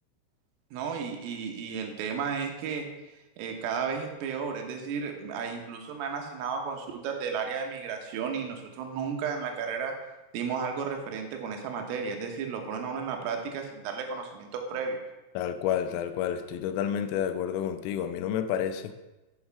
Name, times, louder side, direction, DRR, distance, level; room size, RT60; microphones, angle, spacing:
voice 1, 0.7-2.9 3.4-9.9 10.3-15.0, right 6 dB, 85° right, 4 dB, 3.7 m, -33 dB
voice 2, 15.3-18.9, left 9 dB, 85° left, 9 dB, 3.3 m, -30 dB
7.9 x 6.3 x 5.8 m, 1.1 s
omnidirectional pair, 5.8 m